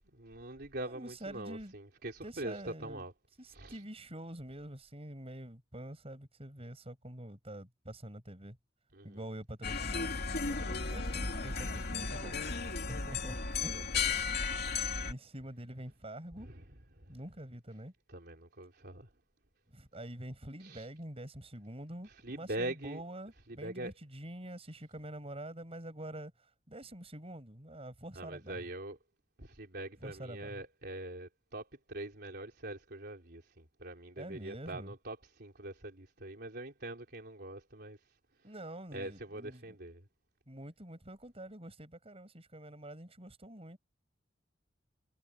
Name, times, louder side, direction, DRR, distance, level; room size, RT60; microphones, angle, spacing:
voice 1, 0.1-3.1 3.5-3.8 8.9-9.2 12.8-13.1 13.7-14.5 16.4-16.6 16.9-17.1 18.1-19.1 20.6-20.9 22.1-23.0 23.5-23.9 28.2-29.0 29.4-38.0 38.9-40.0, right 1 dB, 60° right, 4.0 m, -43 dB
voice 2, 0.8-1.7 2.2-3.0 3.4-8.6 9.0-10.2 10.5-12.4 12.9-13.9 15.0-16.5 17.1-17.9 19.7-26.3 26.7-28.6 30.0-30.6 34.2-34.9 38.4-39.8 40.5-43.8, right 1 dB, 30° right, 7.9 m, -46 dB
sound 1, 9.6-15.1, left 4 dB, 60° left, 2.5 m, -35 dB
head